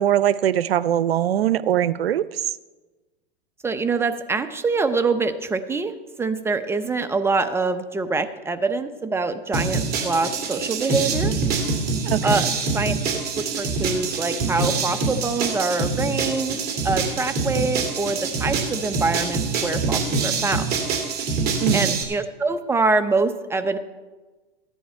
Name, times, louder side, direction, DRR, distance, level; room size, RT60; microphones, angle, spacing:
voice 1, 0.0-2.4 12.1-12.4 21.6-22.0, right 11 dB, 90° right, 17 dB, 0.6 m, -22 dB
voice 2, 3.6-11.3 12.2-12.5 12.7-12.9 13.4-20.7 21.7-23.8, right 3 dB, 10° right, 9 dB, 0.8 m, -25 dB
sound 1, 9.5-22.0, right 4 dB, 30° right, 2.4 m, -25 dB
14.5 x 10.0 x 4.5 m, 1.2 s
hypercardioid pair, 120°, 30 cm